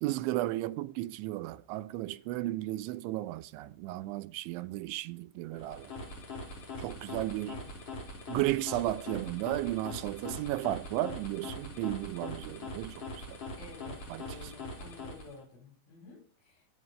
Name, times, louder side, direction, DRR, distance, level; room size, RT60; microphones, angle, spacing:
voice 1, 0.0-5.9 6.8-7.6 8.3-13.4 14.1-14.2, right 16 dB, 85° right, 3.2 m, -34 dB
sound 1, 5.5-15.4, left 2 dB, 35° left, 4.3 m, -42 dB
voice 2, 13.6-16.7, left 3 dB, 90° left, 10.5 m, -52 dB
21.5 x 10.5 x 5.5 m
omnidirectional pair, 5.3 m